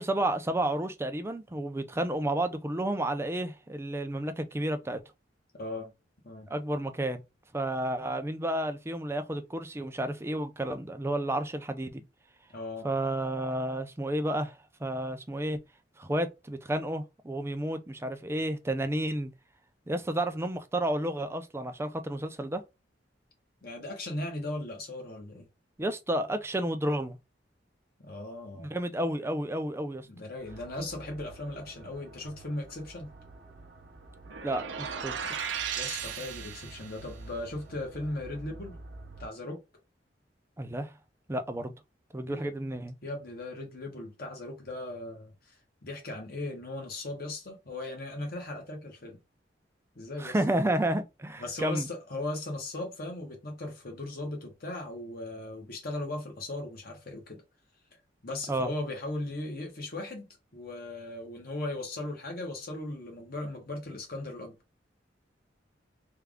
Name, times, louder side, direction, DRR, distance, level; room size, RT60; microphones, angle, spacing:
voice 1, 0.0-5.0 6.5-7.2 7.5-12.0 12.8-14.5 14.8-15.6 16.0-19.3 19.9-22.6 25.8-27.2 28.6-30.1 34.4-35.2 40.6-40.9 41.3-41.7 42.1-42.9 50.2-51.9 58.5-58.7, right 1 dB, 15° right, 0.4 m, -31 dB
voice 2, 5.5-5.9 6.2-6.5 12.5-12.9 23.6-25.5 28.0-28.8 30.1-33.1 35.7-38.8 39.2-39.6 42.3-42.5 43.0-45.5 45.8-49.2 50.0-50.4 51.4-57.4 58.2-64.5, left 2 dB, 55° left, 1.2 m, -38 dB
sound 1, 30.4-39.3, right 2 dB, 65° right, 0.9 m, -49 dB
sound 2, 34.3-37.1, right 7 dB, 85° right, 0.6 m, -36 dB
3.4 x 2.3 x 3.5 m
head